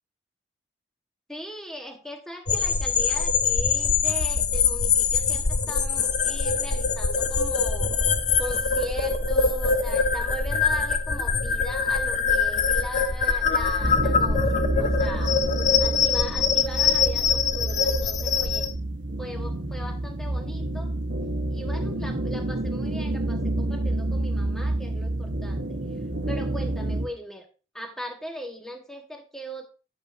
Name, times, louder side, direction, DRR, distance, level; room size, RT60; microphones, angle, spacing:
voice 1, 1.3-7.9 8.4-14.4 14.8-15.4 15.8-18.7 19.2-20.9 21.5-25.8 26.3-27.5 27.7-29.7, equal, 5° left, 3 dB, 1.2 m, -39 dB
sound 1, 2.5-18.7, left 5 dB, 40° left, 0.6 m, -23 dB
sound 2, 13.8-27.1, right 1 dB, 85° right, 1.0 m, -29 dB
10.5 x 7.9 x 2.6 m, 0.33 s
head